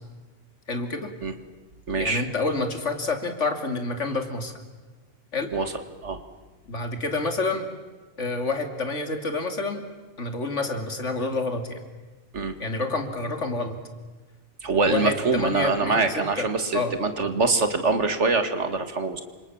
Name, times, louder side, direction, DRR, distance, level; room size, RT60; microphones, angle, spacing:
voice 1, 0.7-1.1 2.0-4.5 5.3-5.5 6.7-7.7 8.2-9.8 10.2-11.8 12.6-13.8 14.9-16.5 16.7-16.9, left 3 dB, 90° left, 6 dB, 3.1 m, -28 dB
voice 2, 1.9-2.2 5.5-5.7 6.0-6.2 12.3-12.5 14.6-19.2, right 3 dB, 75° right, 9 dB, 2.5 m, -24 dB
29.0 x 26.0 x 7.3 m, 1.3 s
omnidirectional pair, 1.2 m